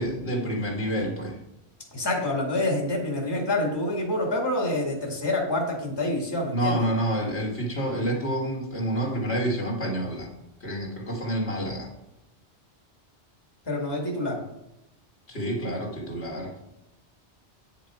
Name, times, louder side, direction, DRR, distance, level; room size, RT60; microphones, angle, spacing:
voice 1, 0.0-1.4 6.5-10.3 10.6-11.9 15.3-16.5, right 1 dB, 65° left, -1 dB, 2.5 m, -28 dB
voice 2, 1.9-6.8 13.7-14.4, left 1 dB, 20° left, -1 dB, 2.1 m, -27 dB
9.3 x 6.0 x 4.9 m, 0.90 s
omnidirectional pair, 1.2 m